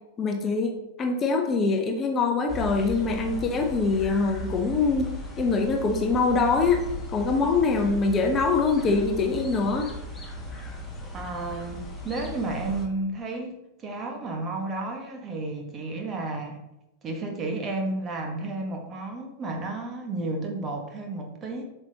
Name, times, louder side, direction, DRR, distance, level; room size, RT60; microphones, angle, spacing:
voice 1, 0.2-0.7 1.0-5.1 5.4-6.8 7.1-9.9, left 4 dB, 25° left, 4 dB, 0.9 m, -24 dB
sound 1, 2.5-12.8, equal, 10° left, 1.6 m, -37 dB
voice 2, 11.1-16.6 17.0-21.6, right 2 dB, 25° right, 2 dB, 1.4 m, -32 dB
7.8 x 5.8 x 2.9 m, 0.89 s
figure-of-eight pair, 90°, 0 cm